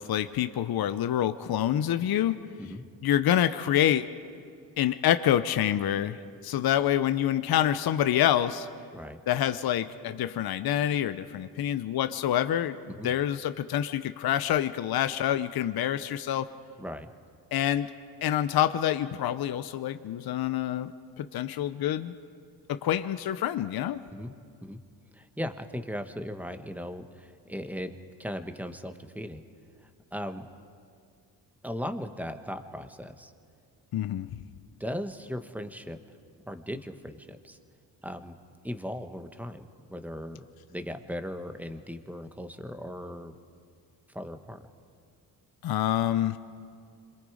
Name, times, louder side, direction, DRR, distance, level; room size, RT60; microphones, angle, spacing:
voice 1, 0.0-2.4 3.0-4.0 4.8-8.7 9.3-12.8 13.0-16.5 17.5-17.9 18.2-20.9 21.2-22.1 22.7-24.0 33.9-34.3 45.6-46.4, left 11 dB, 55° left, 11 dB, 0.8 m, -27 dB
voice 2, 16.8-17.1 24.1-24.3 24.6-24.8 25.1-29.4 30.1-30.5 31.6-33.3 34.8-36.0 36.5-37.6 38.0-38.3 38.6-40.4 40.7-43.3 44.1-44.6, equal, 5° right, 7 dB, 1.5 m, -37 dB
27.0 x 22.5 x 5.0 m, 2.2 s
supercardioid pair, 65°, 44 cm